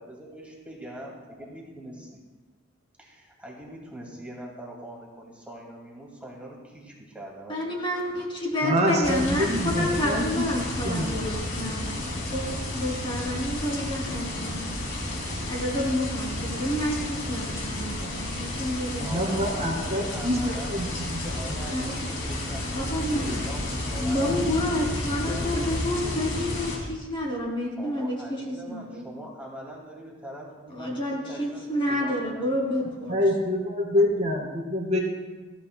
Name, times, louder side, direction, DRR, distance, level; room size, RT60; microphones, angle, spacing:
voice 1, 0.0-2.1 3.0-7.7 8.6-8.8 19.0-24.4 25.1-26.2 27.8-32.5 33.9-34.1, right 1 dB, 5° right, -3 dB, 2.1 m, -42 dB
voice 2, 7.5-12.0 12.3-14.7 15.5-19.7 21.7-22.0 22.7-23.2 23.9-29.1 30.7-33.2, left 1 dB, 25° left, -2 dB, 2.8 m, -29 dB
voice 3, 8.6-10.2 10.8-11.3 19.0-20.9 21.1-21.2 33.1-35.0, equal, 35° right, 0 dB, 1.9 m, -26 dB
sound 1, 9.0-26.8, left 1 dB, 70° left, 2.6 m, -31 dB
19.0 x 14.5 x 2.2 m, 1.2 s
head